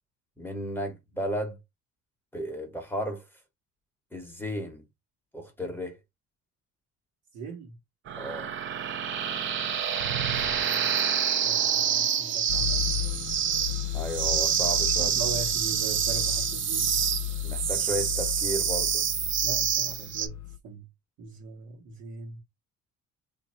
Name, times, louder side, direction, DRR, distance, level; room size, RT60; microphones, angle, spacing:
voice 1, 0.4-1.6 2.3-3.2 4.1-4.8 5.3-6.0 8.2-8.5 13.9-15.1 17.4-19.0, equal, 5° left, 0.9 m, -34 dB
voice 2, 7.3-7.7 10.2-10.9 11.4-13.0 15.0-17.0 19.4-20.4 20.6-20.8 21.2-22.4, right 4 dB, 65° right, 1.2 m, -40 dB
sound 1, 8.1-20.3, right 8 dB, 40° right, 0.6 m, -27 dB
sound 2, 12.5-20.6, left 15 dB, 85° left, 0.6 m, -34 dB
3.1 x 2.6 x 4.2 m
cardioid pair, 150°, 29 cm